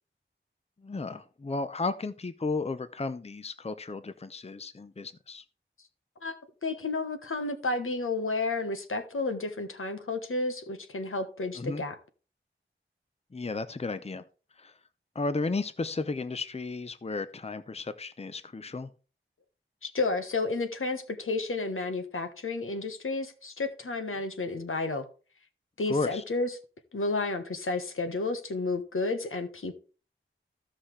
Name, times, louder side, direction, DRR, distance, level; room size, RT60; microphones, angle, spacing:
voice 1, 0.8-5.4 11.5-11.8 13.3-14.2 14.6-14.7 15.1-18.9 25.9-26.2, left 3 dB, 30° left, 0.6 m, -33 dB
voice 2, 6.6-12.0 19.8-25.0 25.8-26.5 26.9-29.7, left 3 dB, 80° left, 1.3 m, -31 dB
15.0 x 5.7 x 3.3 m
wide cardioid pair, 55°, 21 cm